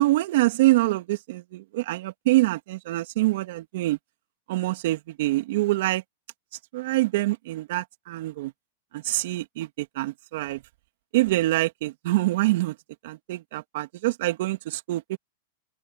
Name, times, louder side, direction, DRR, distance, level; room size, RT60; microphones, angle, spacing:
voice 1, 0.0-4.0 4.5-6.0 6.7-8.5 8.9-10.6 11.1-12.8 13.0-15.2, right 18 dB, 65° right, 2.9 m, -25 dB
open air
hypercardioid pair, 120°, 0 cm